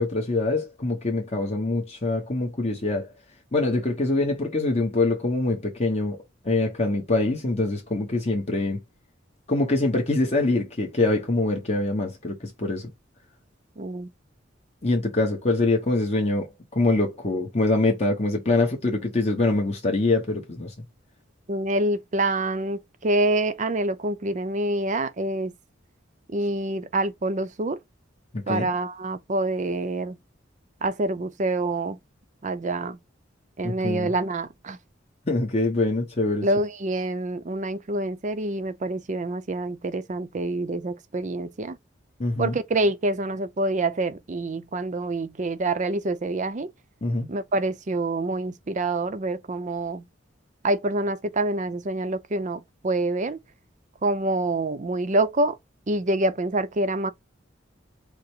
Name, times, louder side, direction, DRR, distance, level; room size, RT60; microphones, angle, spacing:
voice 1, 0.0-3.1 3.5-8.8 9.5-12.9 14.8-20.7 28.3-28.7 33.6-34.1 35.3-36.5 42.2-42.6 47.0-47.3, left 2 dB, 35° left, 1.0 m, -24 dB
voice 2, 13.8-14.1 21.5-25.5 26.3-27.8 28.5-30.2 30.8-32.0 32.4-33.0 33.6-34.8 36.4-41.8 42.4-46.7 47.3-50.0 50.6-53.4 54.0-55.6 55.9-57.1, right 2 dB, 40° right, 0.6 m, -26 dB
4.8 x 2.1 x 4.5 m
head